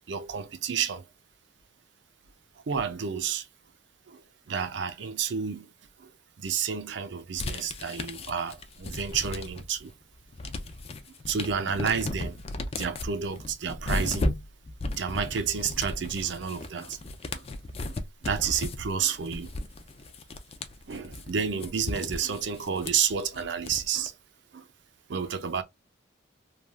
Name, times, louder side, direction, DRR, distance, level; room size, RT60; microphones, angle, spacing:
voice 1, 0.1-1.0 2.7-3.5 4.1-4.2 4.5-5.7 6.0-6.1 6.4-9.9 11.3-12.4 12.7-14.4 15.0-17.0 17.3-17.4 17.9-19.5 20.9-24.1 24.5-24.7 25.1-25.6, right 7 dB, 70° right, 0.5 m, -30 dB
sound 1, 7.4-9.8 10.1-24.1, left 2 dB, 30° left, 0.4 m, -35 dB
3.2 x 2.3 x 2.3 m
head